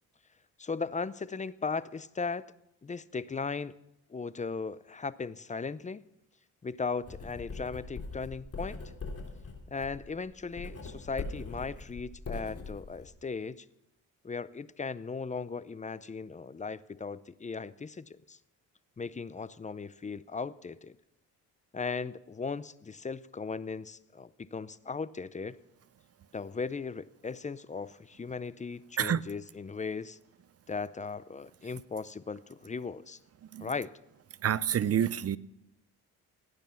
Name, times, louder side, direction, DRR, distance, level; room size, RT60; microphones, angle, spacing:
voice 1, 0.6-2.4 2.8-3.7 4.1-6.0 6.6-8.8 9.7-13.7 14.2-18.4 19.0-21.0 21.7-25.6 26.3-30.2 30.7-33.2 33.6-33.9, left 4 dB, 20° left, 17 dB, 0.5 m, -37 dB
Writing, 7.0-13.1, left 3 dB, 40° left, 3.5 m, -42 dB
voice 2, 34.4-35.4, right 9 dB, 40° right, 18 dB, 0.6 m, -28 dB
17.5 x 9.7 x 5.8 m, 0.89 s
cardioid pair, 85°, 36 cm